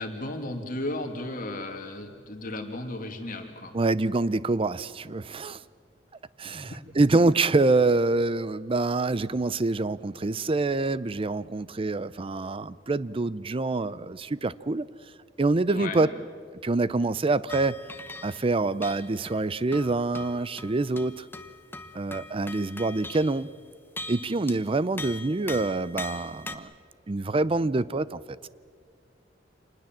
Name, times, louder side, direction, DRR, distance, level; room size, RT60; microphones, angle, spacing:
voice 1, 0.0-3.7 6.4-6.8 15.7-16.1, left 2 dB, 50° left, 4 dB, 2.5 m, -35 dB
voice 2, 3.7-5.6 6.4-14.9 15.4-16.1 16.6-17.8 18.2-21.2 21.9-23.5 24.1-26.7 27.1-28.4, right 3 dB, 30° right, 18 dB, 0.5 m, -26 dB
sound 1, 17.5-18.5 18.8-23.5 24.0-24.7 25.0-26.6, left 2 dB, 10° left, 1.0 m, -41 dB
26.5 x 20.0 x 7.5 m, 2.1 s
head